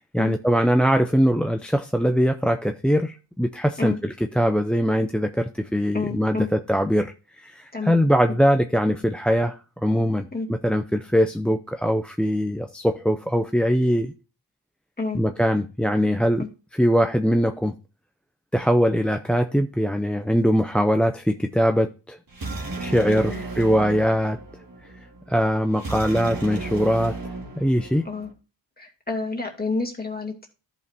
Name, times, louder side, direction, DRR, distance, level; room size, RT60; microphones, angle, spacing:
voice 1, 0.0-7.1 7.4-14.1 15.1-16.5 16.8-17.7 18.5-22.2 22.8-24.4 25.3-27.2 27.6-28.0, equal, ahead, 0.4 m, -22 dB
voice 2, 5.9-6.5 7.7-8.1 10.3-10.5 15.0-15.2 16.4-16.5 23.1-23.4 28.0-28.3 28.8-30.5, left 3 dB, 20° left, 2.3 m, -29 dB
sound 1, 22.3-28.3, right 3 dB, 50° right, 2.0 m, -34 dB
14.0 x 5.3 x 2.7 m
wide cardioid pair, 75°, 44 cm